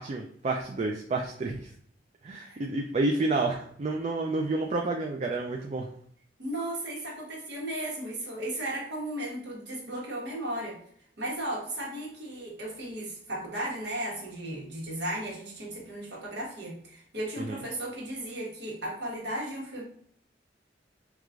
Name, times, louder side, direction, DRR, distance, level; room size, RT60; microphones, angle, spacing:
voice 1, 0.0-1.6 2.2-5.9 17.4-17.6, right 2 dB, 35° right, 1 dB, 0.3 m, -29 dB
voice 2, 6.4-10.8 11.2-19.8, right 1 dB, 70° right, -3 dB, 1.2 m, -35 dB
4.6 x 2.3 x 2.4 m, 0.64 s
head